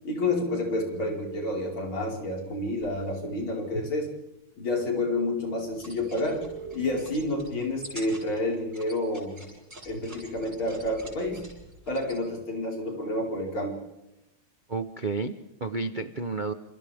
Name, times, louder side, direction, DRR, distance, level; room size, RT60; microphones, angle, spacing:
voice 1, 0.0-4.1 4.6-6.5 6.7-9.4 9.9-11.5 11.9-13.8, left 2 dB, 65° left, 0 dB, 5.7 m, -29 dB
sound 1, 0.7-1.6 2.8-2.9 6.3-6.7, right 4 dB, 45° left, 6.0 m, -40 dB
sound 2, 5.7-12.2, right 1 dB, 25° right, 7.6 m, -47 dB
voice 2, 14.7-16.5, right 3 dB, 40° right, 8 dB, 0.7 m, -31 dB
28.5 x 27.5 x 3.6 m, 0.93 s
omnidirectional pair, 2.4 m